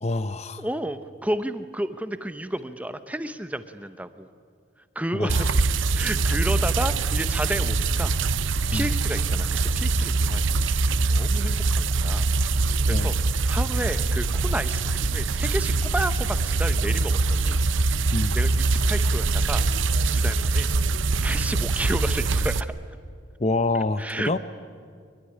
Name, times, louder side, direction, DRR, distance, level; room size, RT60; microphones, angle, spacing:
voice 1, 0.0-0.6 5.1-5.5 8.7-8.9 12.9-13.1 18.1-18.3 23.4-24.4, left 2 dB, 35° left, 13 dB, 0.7 m, -26 dB
voice 2, 0.6-4.3 5.0-5.5 6.0-8.1 8.7-10.4 11.1-12.3 12.6-13.1 13.5-17.6 18.3-19.6 20.1-20.7 21.2-22.7 23.7-24.4, right 1 dB, 5° right, 11 dB, 0.8 m, -31 dB
sound 1, 5.3-22.6, right 3 dB, 70° right, 0.8 m, -23 dB
24.0 x 21.5 x 9.9 m, 2.1 s
head